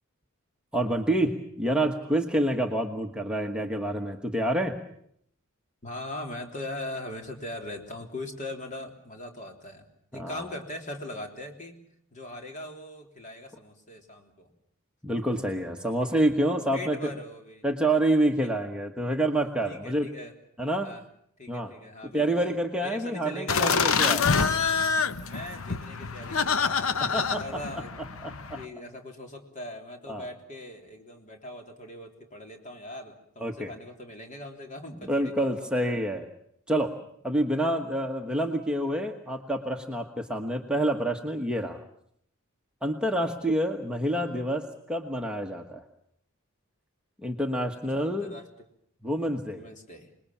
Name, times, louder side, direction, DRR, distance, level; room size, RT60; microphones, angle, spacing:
voice 1, 0.7-4.8 10.1-10.4 15.0-17.1 17.6-20.1 20.6-20.9 21.5-21.7 22.1-24.3 27.0-27.4 28.0-28.6 30.1-30.2 33.4-33.7 35.1-36.3 36.7-37.0 37.2-41.8 42.8-45.8 47.2-48.3 49.0-49.6, right 1 dB, 5° right, 2 dB, 1.3 m, -27 dB
voice 2, 5.8-9.9 10.1-11.8 12.1-14.5 16.1-16.2 16.7-17.7 19.6-20.3 20.8-21.0 21.4-23.8 25.3-28.0 28.5-35.7 43.2-43.4 47.9-48.5 49.5-50.1, left 1 dB, 35° left, 3 dB, 3.5 m, -40 dB
sound 1, 23.5-28.6, left 5 dB, 65° left, 1.0 m, -26 dB
27.0 x 21.0 x 7.3 m, 0.68 s
head